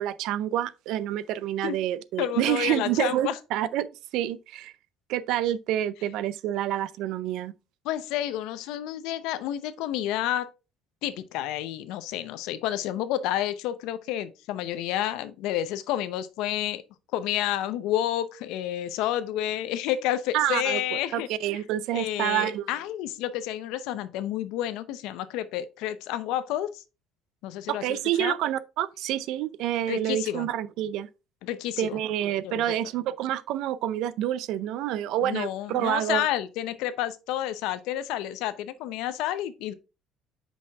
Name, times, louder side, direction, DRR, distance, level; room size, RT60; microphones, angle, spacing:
voice 1, 0.0-3.9 4.1-4.7 5.1-7.5 20.3-22.7 27.7-31.1 31.8-36.2, right 12 dB, 70° right, 0.5 m, -28 dB
voice 2, 2.2-3.4 7.8-10.5 11.0-16.8 17.1-21.3 21.9-26.8 27.4-28.3 29.9-30.5 31.4-32.0 32.4-32.6 35.2-39.7, left 12 dB, 80° left, 0.7 m, -30 dB
5.6 x 5.2 x 3.5 m
cardioid pair, 140°, 0 cm